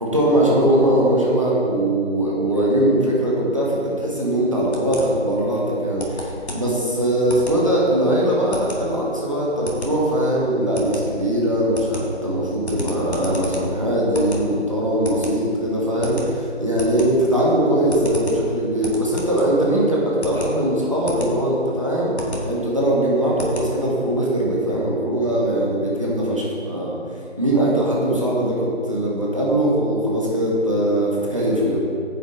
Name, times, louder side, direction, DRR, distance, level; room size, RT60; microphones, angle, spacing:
voice 1, 0.0-22.2 22.4-27.0 27.4-31.8, right 1 dB, 30° right, -5 dB, 1.5 m, -21 dB
sound 1, 4.7-24.1, left 1 dB, 65° left, 2.0 m, -33 dB
9.9 x 7.6 x 3.9 m, 2.4 s
figure-of-eight pair, 175°, 35 cm